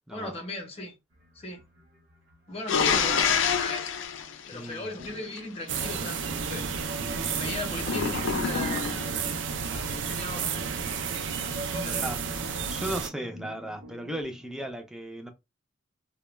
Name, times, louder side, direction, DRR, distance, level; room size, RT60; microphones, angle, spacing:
voice 1, 0.1-1.0 1.3-1.6 2.5-3.9 4.5-6.8 7.3-8.9 9.6-10.6 11.7-12.1, left 2 dB, 30° left, 0.6 m, -37 dB
sound 1, 1.1-3.9 5.0-14.7, left 1 dB, 55° right, 0.8 m, -50 dB
sound 2, 2.7-5.4 7.8-9.2, left 6 dB, 80° left, 0.4 m, -27 dB
voice 2, 4.5-4.9 12.0-12.2 12.7-15.3, right 1 dB, 5° right, 0.4 m, -36 dB
sound 3, 5.7-13.1, right 6 dB, 75° right, 0.4 m, -31 dB
2.2 x 2.1 x 3.0 m
head